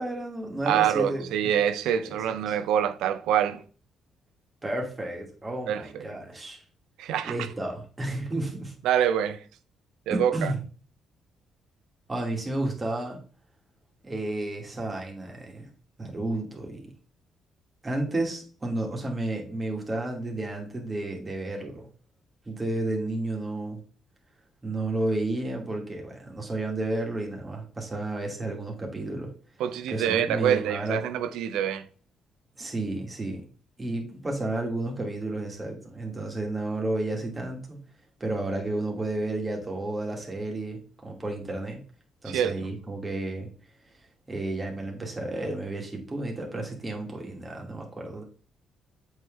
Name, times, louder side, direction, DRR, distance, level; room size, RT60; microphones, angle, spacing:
voice 1, 0.0-1.5 2.1-2.2 2.5-2.6 4.6-6.6 7.2-8.7 10.1-10.6 12.1-13.2 14.0-15.7 16.0-16.9 17.8-21.8 22.5-23.8 24.6-29.3 29.9-31.0 32.6-33.4 33.8-37.8 38.2-41.8 42.2-43.5 44.3-48.2, right 2 dB, 25° right, 2.7 m, -32 dB
voice 2, 0.7-3.6 5.7-5.8 7.0-7.3 8.8-9.4 10.1-10.5 29.6-31.9 42.3-42.6, right 9 dB, 90° right, 0.7 m, -25 dB
8.0 x 4.8 x 3.8 m
cardioid pair, 90°, 0 cm